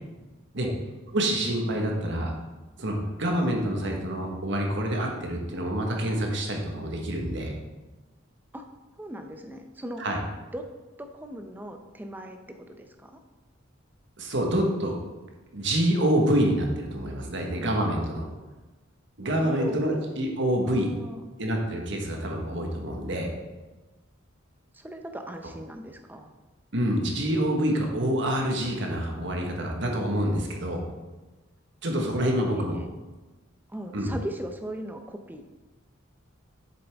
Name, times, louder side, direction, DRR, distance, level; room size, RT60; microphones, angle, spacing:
voice 1, 1.1-2.3 2.8-7.5 10.0-10.2 14.2-15.0 15.5-18.2 19.2-20.9 21.4-23.3 26.7-30.8 31.8-32.8 33.9-34.1, right 1 dB, 60° right, 1 dB, 1.3 m, -27 dB
voice 2, 9.0-10.0 10.5-10.6 11.0-13.2 19.4-20.0 20.7-21.2 24.7-26.3 32.3-32.6 33.7-35.4, equal, 10° right, 5 dB, 0.6 m, -38 dB
7.9 x 6.9 x 3.5 m, 1.2 s
head